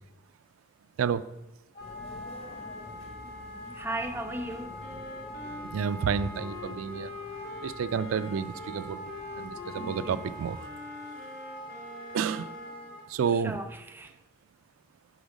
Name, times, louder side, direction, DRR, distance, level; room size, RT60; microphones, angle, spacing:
Wind instrument woodwind instrument, 1.7-13.1, equal, 45° left, 1.2 m, -43 dB
sound 1, 1.8-10.4, left 1 dB, 30° left, 0.7 m, -49 dB
voice 1, 3.7-4.8 9.8-10.2 12.9-13.0 13.3-14.1, right 1 dB, 10° right, 0.4 m, -37 dB
Wind instrument woodwind instrument 2, 4.3-12.9, left 3 dB, 80° left, 1.9 m, -45 dB
voice 2, 5.7-7.1 7.6-10.7 12.1-12.5 13.1-13.6, right 6 dB, 85° right, 0.3 m, -30 dB
6.2 x 5.0 x 5.1 m
head